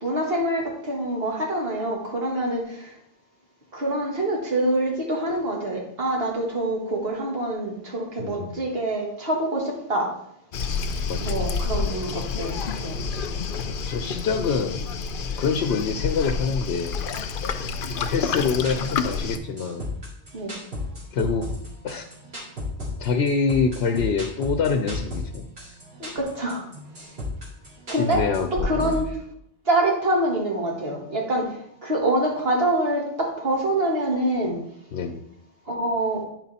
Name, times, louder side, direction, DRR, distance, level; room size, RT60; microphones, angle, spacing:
voice 1, 0.0-3.0 3.7-10.1 11.2-13.0 20.3-20.6 26.0-26.6 27.0-27.1 27.9-29.2 29.7-34.6 35.7-36.2, right 1 dB, 70° right, -1 dB, 2.0 m, -26 dB
voice 2, 8.2-8.6 11.1-11.5 13.5-14.9 15.4-17.0 17.9-19.9 21.1-21.5 21.8-22.1 23.0-25.4 28.0-29.0 34.9-35.2, left 5 dB, 90° left, 5 dB, 0.9 m, -26 dB
Waves surf, 10.5-19.4, left 5 dB, 60° left, 0.7 m, -29 dB
sound 1, 18.4-29.0, left 2 dB, 90° right, 2.7 m, -33 dB
9.9 x 4.6 x 4.1 m, 0.74 s
omnidirectional pair, 1.0 m